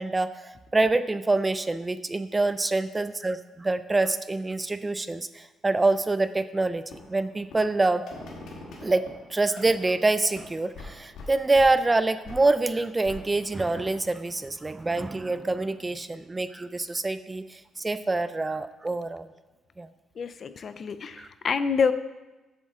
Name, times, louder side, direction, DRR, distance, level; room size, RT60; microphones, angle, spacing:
voice 1, 0.0-6.8 7.1-8.0 8.8-9.0 9.3-19.3 19.8-19.9 21.2-21.3, right 2 dB, 20° right, 13 dB, 0.4 m, -26 dB
sound 1, 6.9-12.0 12.2-13.6, left 3 dB, 80° left, 1.7 m, -44 dB
voice 2, 20.2-21.9, left 5 dB, 50° left, 12 dB, 0.5 m, -27 dB
8.1 x 7.1 x 3.7 m, 1.1 s
cardioid pair, 90°, 0 cm